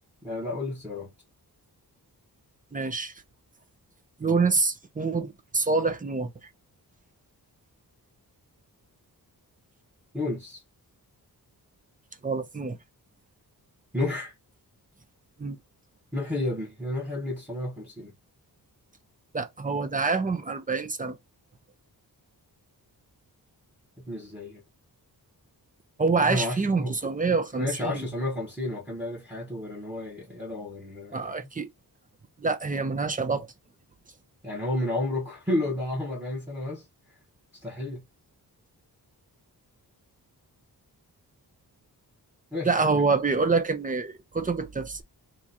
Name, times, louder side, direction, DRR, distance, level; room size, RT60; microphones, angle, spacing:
voice 1, 0.2-1.1 10.1-10.6 13.9-14.3 16.1-18.1 24.0-24.6 26.2-26.9 27.3-31.5 34.4-36.9 37.6-38.0 42.5-43.0, left 1 dB, 5° right, 1.1 m, -31 dB
voice 2, 2.7-3.1 4.2-6.3 12.2-12.8 15.4-15.6 19.3-21.2 26.0-28.1 31.1-31.7 32.4-33.5 42.6-45.0, right 4 dB, 20° right, 0.5 m, -26 dB
3.0 x 2.4 x 3.9 m
wide cardioid pair, 140°, 39 cm